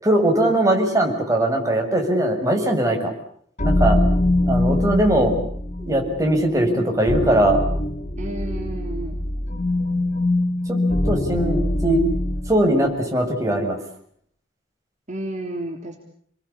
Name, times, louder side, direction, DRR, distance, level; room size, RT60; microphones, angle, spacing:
voice 1, 0.0-3.1 3.6-4.0 4.5-5.3 5.8-7.6 10.7-10.8 11.1-12.0 12.5-13.8, right 1 dB, 20° right, 2 dB, 6.8 m, -20 dB
sound 1, 3.6-12.8, left 1 dB, 45° left, 2.5 m, -23 dB
voice 2, 8.2-9.2 15.1-16.0, right 1 dB, 40° right, 2 dB, 3.7 m, -31 dB
29.5 x 21.5 x 8.6 m, 0.64 s
head